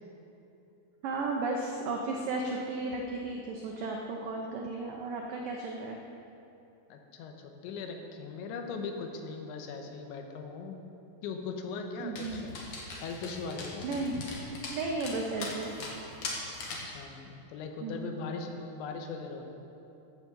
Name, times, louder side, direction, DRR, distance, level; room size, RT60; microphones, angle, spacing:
voice 1, 1.0-6.0 12.0-12.4 13.8-14.3 14.7-15.9 17.8-18.1, right 3 dB, 85° right, 1 dB, 1.9 m, -34 dB
voice 2, 6.9-10.8 11.2-12.5 13.0-13.9 16.9-19.5, left 4 dB, 85° left, 4 dB, 3.4 m, -39 dB
Dog, 12.2-17.0, left 2 dB, 55° left, 1.9 m, -41 dB
15.5 x 7.4 x 6.9 m, 2.8 s
omnidirectional pair, 5.2 m